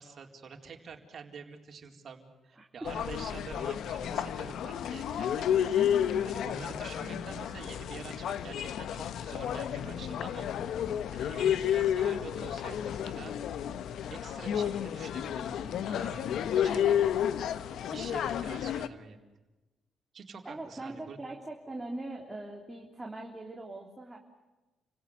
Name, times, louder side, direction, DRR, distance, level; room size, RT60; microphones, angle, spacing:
voice 1, 0.0-10.5 10.8-13.4 14.1-17.0 17.4-17.5 17.9-19.2 20.1-21.2, right 5 dB, 50° right, 3 dB, 4.3 m, -47 dB
voice 2, 2.6-2.9 20.4-24.2, right 2 dB, 15° right, 0 dB, 3.4 m, -41 dB
sound 1, 2.8-18.9, left 9 dB, 75° left, 1.2 m, -31 dB
30.0 x 17.5 x 9.5 m, 1.1 s
cardioid pair, 90°, 0 cm